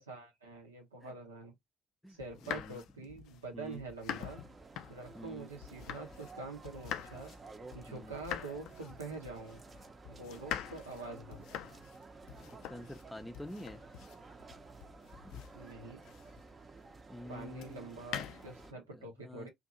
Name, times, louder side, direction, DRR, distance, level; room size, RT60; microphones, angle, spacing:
voice 1, 0.0-1.5 2.1-4.4 4.9-7.3 7.7-9.6 10.1-11.4 15.5-16.0 17.3-19.5, right 3 dB, 85° right, 0.8 m, -45 dB
voice 2, 2.0-2.8 3.5-3.8 5.1-5.5 7.9-8.2 12.3-13.8 15.2-15.4 17.1-17.9 18.9-19.5, left 1 dB, 10° left, 0.5 m, -48 dB
sound 1, 2.2-6.4 6.6-16.6 17.6-18.7, left 10 dB, 65° left, 0.3 m, -45 dB
sound 2, 4.1-18.7, right 3 dB, 35° right, 0.6 m, -53 dB
2.6 x 2.6 x 2.5 m
figure-of-eight pair, 50°, 0 cm